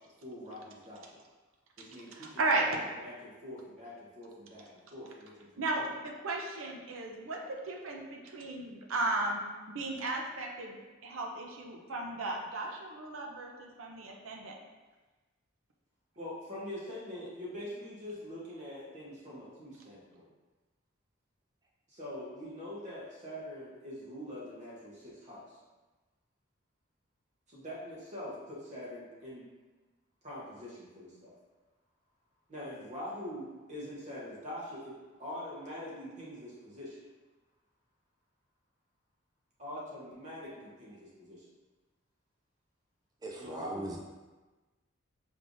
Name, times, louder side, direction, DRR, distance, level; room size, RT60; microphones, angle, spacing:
voice 1, 0.2-1.1 1.8-2.4 3.0-5.5 5.8-5.9 16.2-20.3 21.9-25.4 27.5-29.5 30.2-31.3 32.5-37.0 39.6-41.4 43.4-43.9, left 1 dB, 35° right, -6 dB, 1.0 m, -44 dB
voice 2, 2.1-2.7 5.6-10.8 11.0-14.5, right 2 dB, 80° right, 1 dB, 0.6 m, -35 dB
voice 3, 43.2-44.0, right 1 dB, 20° right, -1 dB, 0.4 m, -40 dB
5.2 x 3.2 x 2.6 m, 1.2 s
head